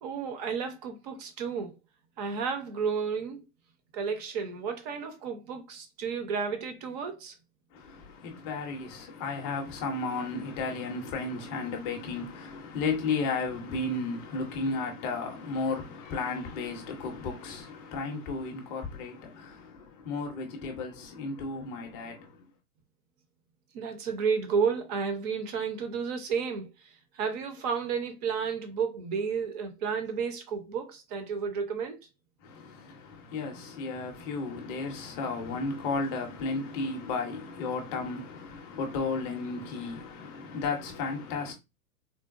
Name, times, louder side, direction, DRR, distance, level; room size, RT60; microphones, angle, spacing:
voice 1, 0.0-1.8 2.2-3.4 3.9-7.3 23.7-26.7 27.1-32.0, right 6 dB, 30° right, 0.5 m, -32 dB
voice 2, 7.7-22.5 32.4-41.5, left 4 dB, 20° left, 0.5 m, -34 dB
3.8 x 2.0 x 2.4 m
hypercardioid pair, 145°, 45 cm